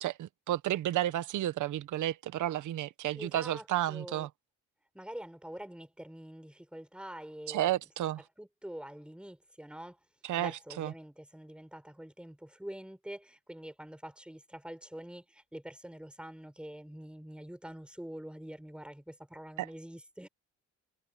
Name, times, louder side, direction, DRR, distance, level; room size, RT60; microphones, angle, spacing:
voice 1, 0.0-4.3 7.5-8.2 10.2-10.5 10.8-10.9 19.6-19.7, right 13 dB, 75° right, 1.3 m, -32 dB
voice 2, 3.1-4.3 4.9-7.7 8.4-10.0 10.4-20.3, right 1 dB, 5° right, 5.6 m, -46 dB
cardioid pair, 90°, 30 cm